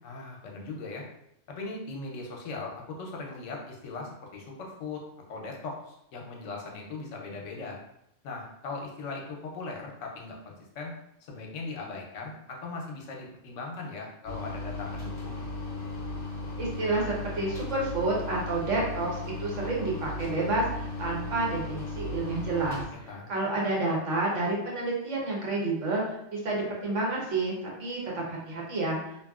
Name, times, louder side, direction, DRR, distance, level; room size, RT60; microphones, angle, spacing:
voice 1, 0.0-1.0 1.5-5.0 5.3-7.8 8.2-10.9 11.2-15.4 22.9-23.3, left 3 dB, 80° left, 0 dB, 0.9 m, -39 dB
sound 1, 14.2-22.8, left 2 dB, 45° left, 0.7 m, -36 dB
voice 2, 16.6-22.8 23.3-29.2, right 2 dB, 75° right, -3 dB, 1.2 m, -29 dB
2.6 x 2.6 x 2.3 m, 0.79 s
omnidirectional pair, 1.3 m